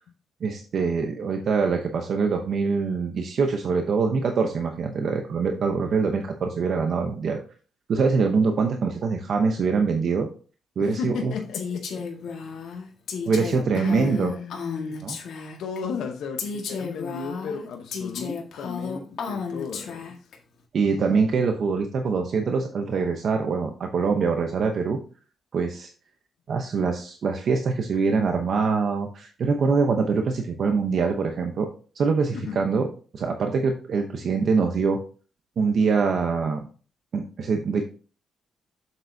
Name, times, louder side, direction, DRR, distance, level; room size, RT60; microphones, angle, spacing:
voice 1, 0.4-7.4 7.9-10.3 10.8-11.3 13.2-14.3 15.0-15.2 20.7-25.0 25.5-25.9 26.5-31.7 32.0-32.9 33.1-35.0 35.6-36.7 37.1-37.8, right 5 dB, 45° right, 0.8 m, -24 dB
voice 2, 10.8-11.9 13.7-15.0 15.6-20.2 32.3-32.6, left 6 dB, 80° left, 0.9 m, -34 dB
Female speech woman speaking, 11.5-15.8 16.4-20.4, left 5 dB, 60° left, 1.6 m, -33 dB
7.7 x 7.2 x 2.7 m
cardioid pair, 170°, 0 cm